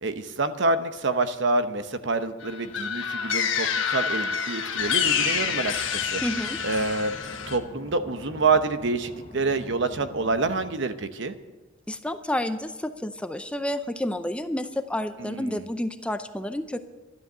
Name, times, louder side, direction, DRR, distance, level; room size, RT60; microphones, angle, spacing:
voice 1, 0.0-6.2 6.6-7.1 7.5-11.4 15.2-15.6, right 3 dB, 65° right, 10 dB, 0.9 m, -27 dB
sound 1, 2.4-7.6, left 7 dB, 75° left, 1.3 m, -27 dB
sound 2, 4.8-10.8, left 1 dB, 30° left, 1.0 m, -44 dB
voice 2, 6.2-6.6 11.9-16.8, left 1 dB, 5° left, 9 dB, 0.5 m, -30 dB
12.5 x 11.5 x 6.7 m, 1.2 s
head